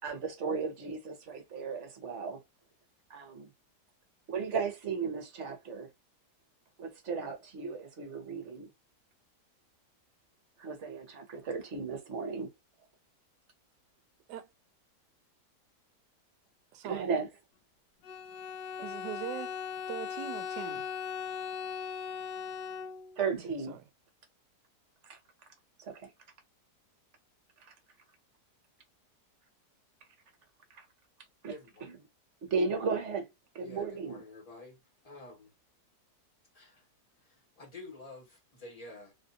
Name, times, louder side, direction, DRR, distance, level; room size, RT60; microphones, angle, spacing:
voice 1, 0.0-2.4 3.1-3.5 4.3-5.9 6.8-8.7 10.6-12.5 16.8-17.3 23.2-23.8 25.0-25.2 25.8-26.1 27.6-27.7 30.7-30.9 31.4-31.6 31.8-32.0 32.4-33.3 33.5-34.2, right 5 dB, 50° right, 1.1 m, -35 dB
voice 2, 16.7-17.1 18.8-19.6 19.9-20.9 23.7-23.8, right 11 dB, 80° right, 1.1 m, -41 dB
Bowed string instrument, 18.0-23.3, left 7 dB, 75° left, 1.3 m, -39 dB
voice 3, 31.5-31.9 33.6-34.8 35.0-35.5 36.5-36.8 37.6-39.1, left 2 dB, 25° left, 1.1 m, -49 dB
3.6 x 2.5 x 2.6 m
omnidirectional pair, 1.8 m